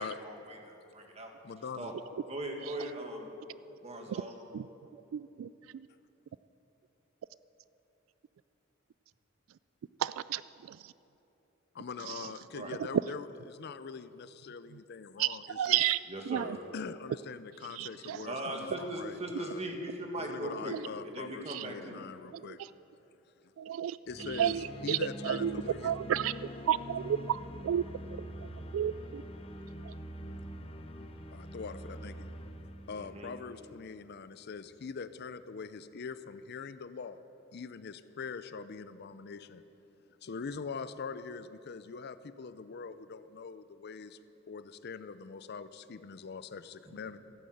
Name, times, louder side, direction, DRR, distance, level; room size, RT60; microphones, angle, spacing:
voice 1, 0.0-0.6 1.2-1.3 1.8-1.9 2.3-3.3 3.8-4.3 12.5-12.8 16.1-16.5 18.3-20.7 21.1-22.0 25.6-25.8 32.9-33.3 46.9-47.0, right 1 dB, 30° right, 2 dB, 1.8 m, -39 dB
voice 2, 1.5-1.9 11.7-15.8 16.7-19.7 20.2-22.6 24.1-26.0 31.3-32.3 32.9-37.2 37.5-39.6 40.2-44.2 44.5-47.2, left 5 dB, 55° left, 13 dB, 0.5 m, -43 dB
voice 3, 5.1-5.9 10.0-10.4 10.7-10.8 12.1-12.2 15.2-16.0 16.3-16.6 17.8-18.2 20.7-20.8 21.4-21.7 22.3-22.7 23.6-24.0 24.3-26.3 26.7-27.8 28.7-29.2 29.8-29.9, right 10 dB, 85° right, 17 dB, 0.3 m, -32 dB
sound 1, 24.1-34.1, equal, 30° left, 0.8 m, -44 dB
14.5 x 9.4 x 7.8 m, 3.0 s
head